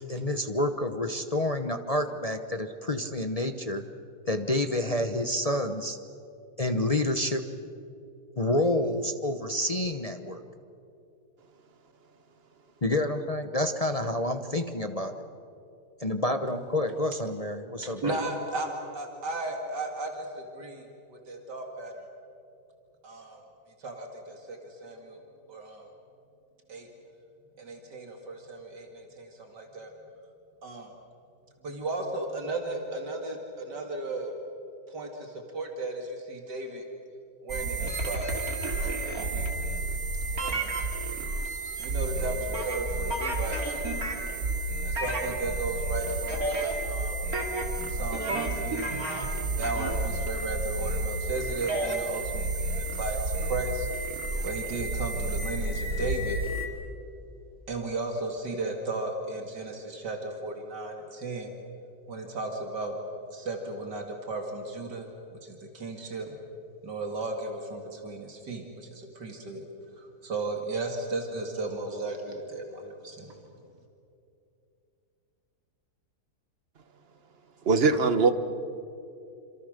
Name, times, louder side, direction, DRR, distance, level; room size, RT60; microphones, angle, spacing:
voice 1, 0.1-3.9 4.3-6.0 6.6-7.5 8.4-10.4 12.8-15.2 16.0-18.2, left 1 dB, 30° left, 0.7 m, -28 dB
voice 2, 17.8-22.1 23.0-23.4 23.8-25.2 25.5-25.9 26.7-26.9 27.6-29.9 30.6-30.9 31.6-34.4 34.9-36.9 37.4-38.3 38.7-39.0 40.4-40.8 41.8-43.8 44.8-47.3 47.9-48.9 49.5-53.9 54.4-56.4 57.7-61.5 62.1-63.0 63.3-66.3 66.8-69.7 70.0-73.4 77.9-78.0, right 2 dB, 75° right, 2.9 m, -35 dB
sound 1, 37.5-56.7, right 2 dB, 55° right, 3.2 m, -31 dB
voice 3, 77.6-78.3, right 4 dB, 40° right, 1.3 m, -21 dB
27.5 x 26.5 x 6.7 m
omnidirectional pair, 1.8 m